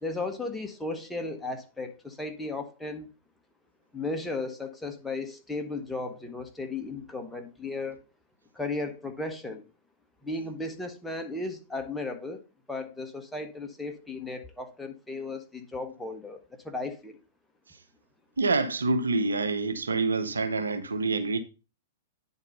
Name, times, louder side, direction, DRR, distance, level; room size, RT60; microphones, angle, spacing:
voice 1, 0.0-3.1 3.9-8.0 8.5-9.6 10.2-12.4 12.7-17.2, left 3 dB, 5° left, 1.4 m, -35 dB
voice 2, 18.4-21.4, right 3 dB, 90° right, 0.9 m, -27 dB
9.6 x 4.1 x 5.4 m
hypercardioid pair, 115°, 0 cm